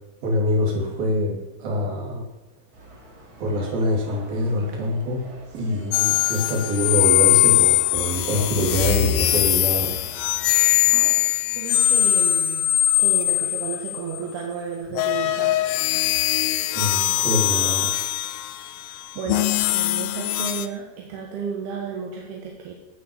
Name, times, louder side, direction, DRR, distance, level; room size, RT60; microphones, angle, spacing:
voice 1, 0.2-2.3 3.4-5.2 5.5-10.0 16.7-18.0, left 1 dB, 70° right, 0 dB, 4.7 m, -25 dB
sound 1, 2.7-11.2, right 1 dB, 40° right, 4.7 m, -45 dB
sound 2, 5.9-14.2 14.9-20.7, left 14 dB, 80° left, 2.3 m, -21 dB
voice 2, 11.6-12.7 13.0-15.6 18.8-22.7, right 6 dB, 85° right, -1 dB, 3.6 m, -33 dB
17.0 x 6.4 x 7.2 m, 1.0 s
omnidirectional pair, 4.4 m